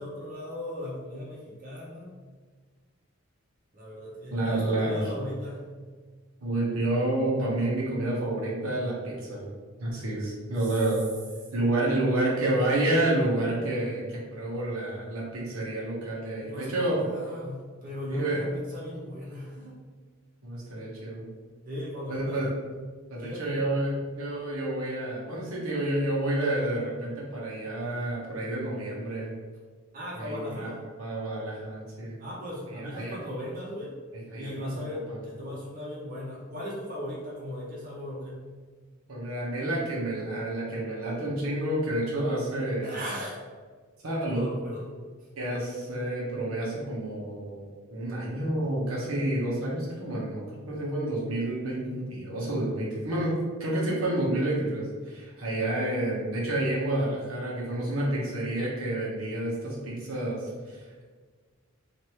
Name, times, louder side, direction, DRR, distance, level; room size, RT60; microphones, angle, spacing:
voice 1, 0.0-2.1 3.7-5.6 16.4-19.8 21.7-22.4 23.2-23.6 29.9-30.8 32.2-33.9 34.3-38.5 42.8-43.4 44.3-44.9 51.8-52.1, left 1 dB, 40° right, -6 dB, 0.7 m, -37 dB
voice 2, 4.3-5.0 6.4-9.5 9.8-11.1 11.5-17.0 18.1-18.4 20.4-21.3 22.1-22.5 23.1-29.3 30.1-30.7 31.0-32.2 32.7-33.1 34.3-34.7 35.1-35.2 39.1-43.0 44.0-44.5 45.4-47.6 47.9-61.0, right 1 dB, 80° right, -4 dB, 0.9 m, -29 dB
3.2 x 2.5 x 2.9 m, 1.5 s
head